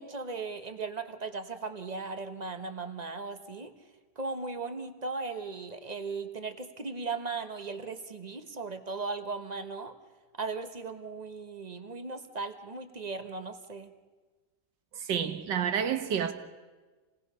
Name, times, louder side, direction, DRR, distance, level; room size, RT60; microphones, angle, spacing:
voice 1, 0.0-3.7 4.2-9.9 10.4-13.9, right 4 dB, 25° right, 1.1 m, -37 dB
voice 2, 14.9-16.3, right 8 dB, 85° right, 1.9 m, -29 dB
28.0 x 19.0 x 5.6 m
omnidirectional pair, 1.8 m